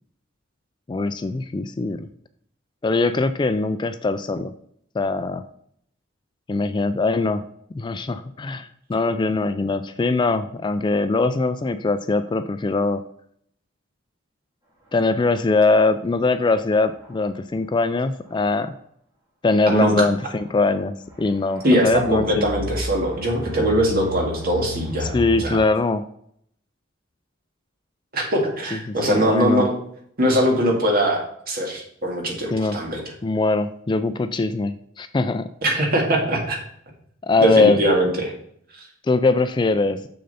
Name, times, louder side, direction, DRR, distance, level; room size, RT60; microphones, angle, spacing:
voice 1, 0.9-2.1 2.8-4.5 4.9-5.4 6.5-7.4 7.7-13.0 14.9-18.7 19.4-22.5 25.0-26.0 29.1-29.7 32.5-32.8 33.2-35.5 37.2-37.8 39.1-40.0, left 3 dB, 25° left, 11 dB, 0.3 m, -21 dB
sound 1, 16.1-16.2 16.9-17.3 18.3-18.4 20.2-20.5 21.1-25.5, equal, 15° right, 2.9 m, -34 dB
voice 2, 19.7-20.0 21.6-25.6 28.1-29.8 30.2-33.0 35.6-36.6 37.4-38.3, equal, 50° right, 1 dB, 2.0 m, -21 dB
6.7 x 6.6 x 4.1 m, 0.68 s
head